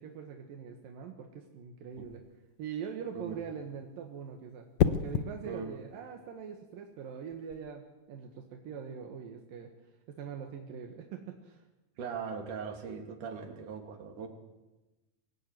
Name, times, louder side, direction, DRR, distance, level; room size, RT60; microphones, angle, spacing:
voice 1, 0.0-2.2 2.6-9.7 10.1-11.6, right 7 dB, 80° right, 3 dB, 3.3 m, -43 dB
sound 1, 2.0-2.3 4.8-5.3 7.3-7.6, left 9 dB, 65° left, 1.9 m, -28 dB
voice 2, 5.4-5.8 12.0-14.3, right 6 dB, 65° right, 4 dB, 4.0 m, -40 dB
24.5 x 17.0 x 9.4 m, 1.1 s
omnidirectional pair, 4.0 m